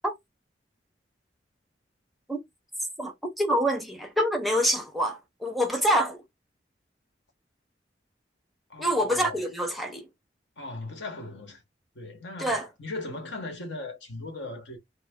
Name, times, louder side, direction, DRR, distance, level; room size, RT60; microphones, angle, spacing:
voice 1, 3.0-6.2 8.8-10.1 12.4-12.7, equal, ahead, 0.6 m, -26 dB
voice 2, 8.7-9.5 10.6-11.6 11.9-14.8, left 2 dB, 80° left, 1.1 m, -38 dB
3.2 x 2.0 x 3.5 m
head